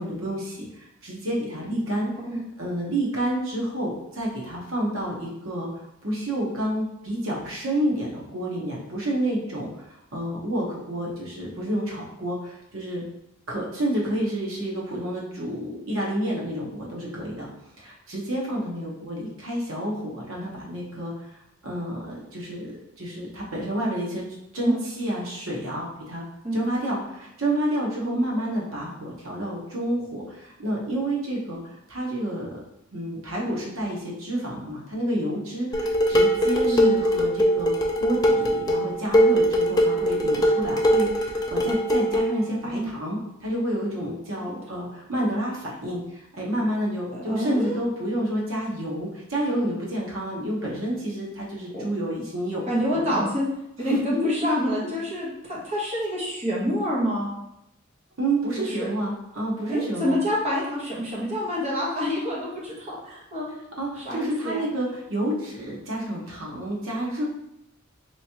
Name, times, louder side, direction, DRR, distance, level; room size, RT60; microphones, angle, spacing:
voice 1, 0.0-2.1 2.6-5.7 6.0-9.9 10.1-13.0 13.5-17.5 17.8-21.1 21.6-22.7 23.0-24.2 24.5-26.2 26.5-32.6 32.9-37.7 38.0-52.6 52.9-53.2 53.9-54.5 58.2-60.2 63.8-67.2, right 1 dB, 80° right, -3 dB, 1.0 m, -29 dB
Dishes pots and pans, 35.7-42.3, equal, 20° left, 0.4 m, -21 dB
voice 2, 47.1-47.8 51.7-51.8 52.7-53.4 53.8-57.3 58.5-58.9 59.7-63.5 64.0-64.6, equal, 30° right, -5 dB, 1.1 m, -27 dB
3.4 x 3.0 x 2.9 m, 0.85 s
head